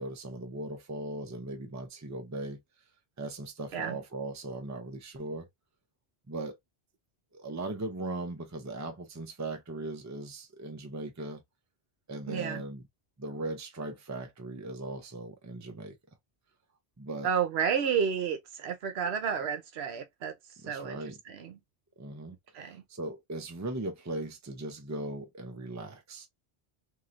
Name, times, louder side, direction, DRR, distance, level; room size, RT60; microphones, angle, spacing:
voice 1, 0.0-2.6 3.2-5.5 6.3-6.6 7.3-11.4 12.1-12.8 13.2-16.0 17.0-17.3 20.6-21.2 22.0-26.3, right 2 dB, 20° right, 0.6 m, -38 dB
voice 2, 12.3-12.6 17.2-20.3 20.6-21.0 21.3-21.6 22.5-22.8, right 7 dB, 70° right, 0.9 m, -31 dB
3.1 x 2.7 x 2.5 m
omnidirectional pair, 1.1 m